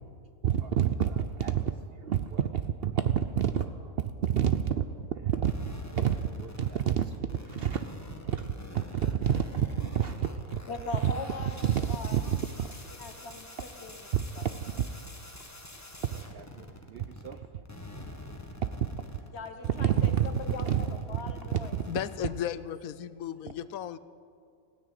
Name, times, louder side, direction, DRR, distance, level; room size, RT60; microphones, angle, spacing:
voice 1, 0.4-1.7 2.0-7.9 8.2-9.7 9.9-10.6 11.0-11.1 11.6-11.9 12.1-12.7 14.1-14.2 14.8-14.9 16.1-17.4 19.8-20.3 20.7-20.8 21.7-21.8, right 9 dB, 60° right, 9 dB, 0.6 m, -29 dB
sound 1, 5.4-17.4 17.6-22.2, left 1 dB, 15° left, 1.2 m, -46 dB
voice 2, 10.7-12.2 13.0-14.1 14.3-14.5 19.3-21.8, left 3 dB, 50° left, 7 dB, 1.4 m, -40 dB
voice 3, 21.9-24.0, left 10 dB, 90° left, 15 dB, 1.1 m, -35 dB
16.0 x 9.9 x 9.1 m, 2.4 s
omnidirectional pair, 1.5 m